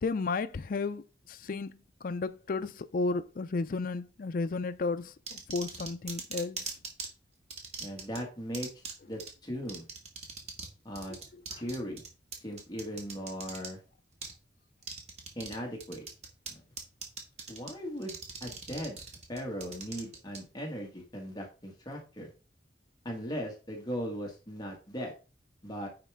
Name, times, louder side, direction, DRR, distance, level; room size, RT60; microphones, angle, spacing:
voice 1, 0.0-6.7 11.1-11.2 11.5-11.6, left 3 dB, 50° left, 0.4 m, -33 dB
sound 1, 5.3-7.1 7.5-8.2 8.5-8.9 9.2-9.3 9.7-10.7 10.9-13.7 14.2-14.3 14.8-15.5 15.8-16.5 16.8-17.7 18.0-20.4, right 4 dB, 35° right, 1.8 m, -40 dB
voice 2, 7.8-8.7 9.1-9.9 10.8-11.2 11.6-12.0 12.4-13.8 15.4-16.0 16.5-16.6 17.5-19.0 19.3-22.3 23.1-25.1 25.6-25.9, equal, 25° left, 1.8 m, -38 dB
9.6 x 5.0 x 3.5 m
head